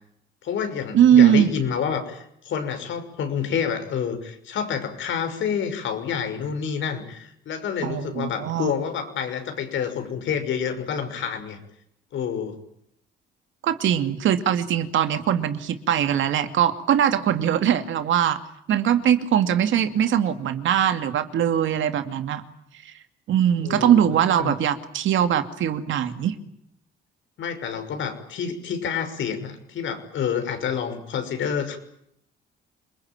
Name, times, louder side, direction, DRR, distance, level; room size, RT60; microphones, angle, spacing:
voice 1, 0.4-11.6 12.1-12.6 23.6-24.0 24.4-24.6 27.4-31.8, left 7 dB, 75° left, 7 dB, 6.0 m, -28 dB
voice 2, 0.9-1.5 7.8-8.7 13.6-18.4 18.7-22.4 23.3-26.3, right 9 dB, 75° right, 9 dB, 2.6 m, -21 dB
28.0 x 21.5 x 9.1 m, 0.75 s
cardioid pair, 90°, 20 cm